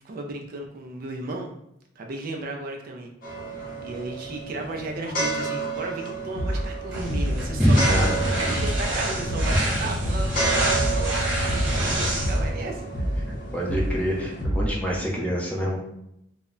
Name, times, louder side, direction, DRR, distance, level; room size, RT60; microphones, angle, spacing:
voice 1, 0.0-1.5 2.0-3.1 3.5-12.9, right 2 dB, 50° right, 2 dB, 0.3 m, -35 dB
sound 1, 3.2-14.4, right 3 dB, 50° left, 0.6 m, -32 dB
sound 2, 6.4-6.7 7.1-7.5 7.8-8.2 8.6-8.9 9.3-9.7 10.0-10.4 10.7-11.1 11.5-11.9 12.2-12.6 12.9-13.3 13.7-14.0 14.4-14.8, equal, 85° left, 0.6 m, -27 dB
sound 3, 6.9-12.5, equal, 65° right, 0.8 m, -27 dB
voice 2, 7.6-8.4 13.2-15.8, equal, 5° left, -3 dB, 0.5 m, -24 dB
2.1 x 2.0 x 3.5 m, 0.79 s
head